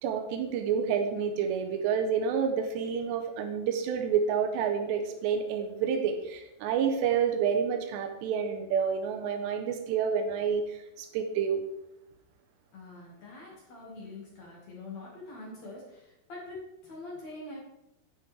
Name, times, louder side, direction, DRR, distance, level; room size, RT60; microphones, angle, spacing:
voice 1, 0.0-11.6, right 7 dB, 85° right, 6 dB, 3.0 m, -29 dB
voice 2, 12.7-16.6 16.8-17.6, left 2 dB, 50° left, -4 dB, 2.7 m, -44 dB
9.4 x 9.2 x 3.4 m, 0.88 s
omnidirectional pair, 5.0 m